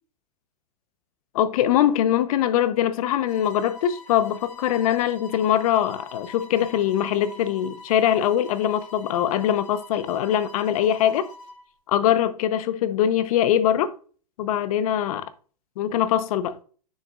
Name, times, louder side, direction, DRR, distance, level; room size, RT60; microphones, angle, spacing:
voice 1, 1.3-11.3 11.9-13.9 14.4-15.3 15.8-16.6, left 10 dB, 60° left, 0.9 m, -22 dB
sound 1, 3.3-11.6, left 2 dB, 30° left, 2.4 m, -44 dB
6.7 x 6.5 x 2.4 m
hypercardioid pair, 120°, 21 cm